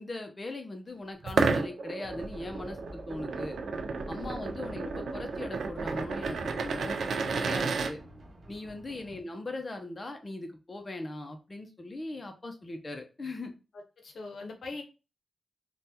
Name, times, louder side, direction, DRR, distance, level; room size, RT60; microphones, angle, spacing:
voice 1, 0.0-3.6 4.1-7.0 7.2-8.0 8.5-13.5, left 2 dB, 35° left, 5 dB, 0.5 m, -40 dB
sound 1, 1.2-7.9, right 4 dB, 90° right, 0.3 m, -32 dB
sound 2, 2.0-9.2, right 1 dB, 45° right, 0.8 m, -47 dB
voice 2, 14.0-14.8, left 3 dB, 80° left, 3 dB, 0.7 m, -42 dB
3.3 x 2.2 x 2.8 m, 0.31 s
cardioid pair, 75°, 0 cm